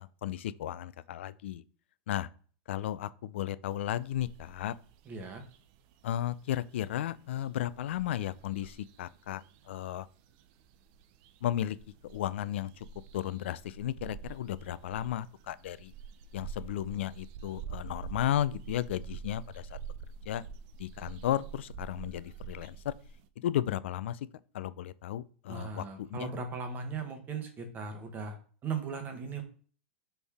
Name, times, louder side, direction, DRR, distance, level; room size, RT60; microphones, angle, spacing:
voice 1, 0.0-1.6 2.1-2.3 2.7-4.8 6.0-10.1 11.4-11.8 12.1-12.9 13.1-15.9 16.3-19.8 20.3-20.4 20.8-22.9 23.4-24.2 24.5-26.3, left 12 dB, 80° left, 0.3 m, -34 dB
sound 1, 3.7-23.3, right 6 dB, 55° right, 0.4 m, -48 dB
voice 2, 5.1-5.4 25.5-28.4 28.6-29.4, right 4 dB, 30° right, 1.1 m, -38 dB
4.2 x 3.4 x 3.5 m
hypercardioid pair, 120°, 6 cm